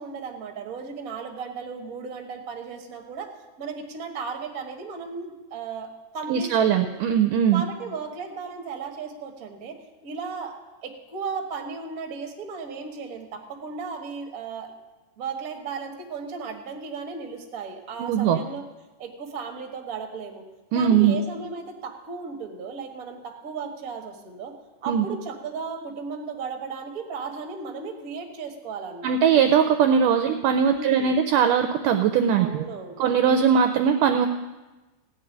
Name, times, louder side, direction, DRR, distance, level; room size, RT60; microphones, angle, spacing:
voice 1, 0.0-3.3 3.6-7.0 7.5-10.5 10.8-14.7 15.2-18.6 19.0-20.4 20.7-24.5 24.8-29.3 30.7-31.2 32.3-33.0, right 5 dB, 65° right, 3 dB, 0.8 m, -35 dB
voice 2, 6.3-7.6 18.0-18.4 20.7-21.2 24.9-25.0 29.0-32.5 33.0-34.3, right 7 dB, 85° right, 7 dB, 1.9 m, -20 dB
16.0 x 5.5 x 9.8 m, 1.1 s
omnidirectional pair, 4.4 m